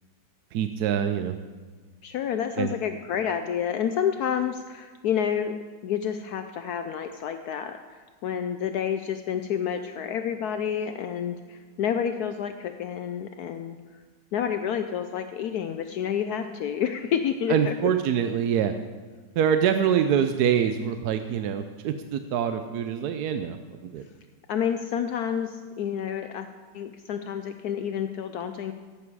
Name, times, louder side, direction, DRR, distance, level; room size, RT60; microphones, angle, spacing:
voice 1, 0.5-1.4 2.6-2.7 17.5-18.7 19.4-23.6 23.8-24.0, right 8 dB, 70° right, 8 dB, 1.1 m, -25 dB
voice 2, 2.0-13.8 14.3-17.7 24.5-26.5 26.7-28.7, left 8 dB, 70° left, 8 dB, 1.0 m, -29 dB
16.5 x 8.4 x 4.7 m, 1.5 s
omnidirectional pair, 1.9 m